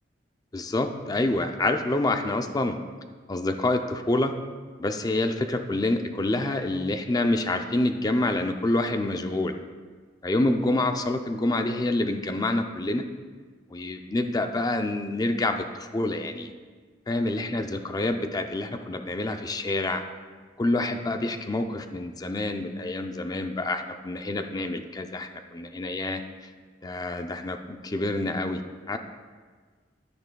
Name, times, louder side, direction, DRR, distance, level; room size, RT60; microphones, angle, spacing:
voice 1, 0.5-2.8 3.3-4.3 4.8-9.5 10.2-13.0 13.7-16.5 17.1-20.0 20.6-26.2 26.8-28.6 28.9-29.0, left 2 dB, 20° left, 7 dB, 0.4 m, -27 dB
10.5 x 9.7 x 2.2 m, 1.5 s
head